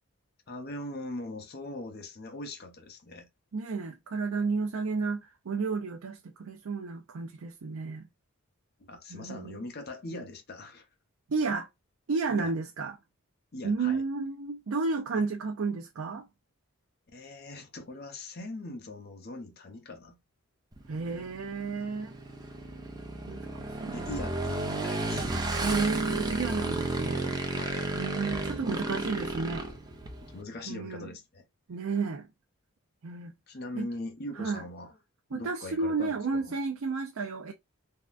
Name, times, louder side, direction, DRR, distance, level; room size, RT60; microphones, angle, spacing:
voice 1, 0.5-3.3 8.9-10.9 12.3-12.5 13.5-14.0 17.1-20.2 23.4-23.6 23.9-25.3 27.5-28.2 30.2-31.4 33.5-35.0 35.3-36.6, left 2 dB, 50° left, 0.7 m, -41 dB
voice 2, 3.5-8.1 9.1-9.6 11.3-11.7 12.1-13.0 13.6-16.3 20.9-22.2 23.3-24.1 25.6-27.4 27.9-29.7 30.7-31.1 31.7-32.3 33.0-33.3 33.8-33.9 34.4-34.6 35.3-37.5, right 4 dB, 75° right, 0.5 m, -32 dB
Motorcycle / Engine, 20.7-30.4, right 2 dB, 20° right, 0.5 m, -33 dB
3.6 x 2.2 x 2.4 m
head